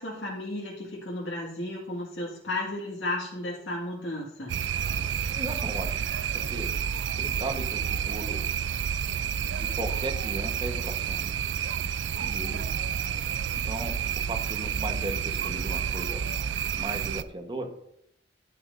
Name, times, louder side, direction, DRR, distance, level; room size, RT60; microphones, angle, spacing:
voice 1, 0.0-4.5, left 1 dB, 85° left, -5 dB, 2.0 m, -34 dB
sound 1, 4.5-17.2, right 8 dB, 75° right, 0.4 m, -30 dB
voice 2, 5.3-5.9 6.3-6.7 7.1-8.4 9.5-11.3 12.2-13.0 13.6-16.2 16.8-17.7, right 1 dB, 25° right, 4 dB, 1.2 m, -37 dB
11.0 x 8.7 x 2.6 m, 0.74 s
head